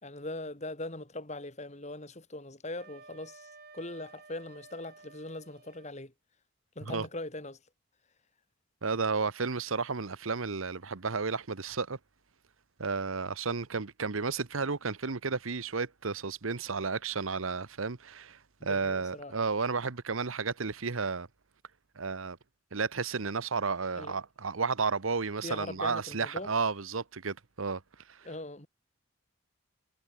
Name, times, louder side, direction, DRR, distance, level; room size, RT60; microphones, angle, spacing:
voice 1, 0.0-6.1 6.8-7.6 18.6-19.4 24.0-24.2 25.4-26.5 28.2-28.7, left 2 dB, 35° left, 2.7 m, -41 dB
Wind instrument woodwind instrument, 2.7-5.9, right 4 dB, 50° right, 5.8 m, -54 dB
voice 2, 8.8-12.0 12.8-21.3 22.0-22.4 22.7-27.8 28.1-28.3, right 4 dB, 85° right, 1.1 m, -32 dB
head